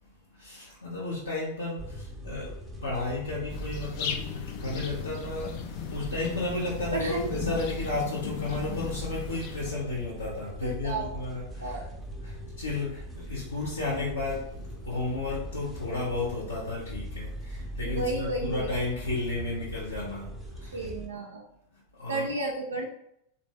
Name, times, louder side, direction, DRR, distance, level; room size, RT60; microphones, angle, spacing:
voice 1, 0.3-2.5 2.8-5.6 5.9-11.8 12.2-20.8 21.7-22.3, left 2 dB, 80° left, -7 dB, 0.8 m, -33 dB
sound 1, 1.8-21.1, equal, ahead, 0.6 m, -40 dB
sound 2, 3.5-9.7, left 8 dB, 45° left, 0.4 m, -37 dB
voice 2, 6.9-7.3 10.6-11.2 11.6-11.9 17.8-18.7 20.7-21.4 22.1-22.9, right 2 dB, 75° right, -1 dB, 0.4 m, -32 dB
3.3 x 2.6 x 3.1 m, 0.75 s
figure-of-eight pair, 90°, 0 cm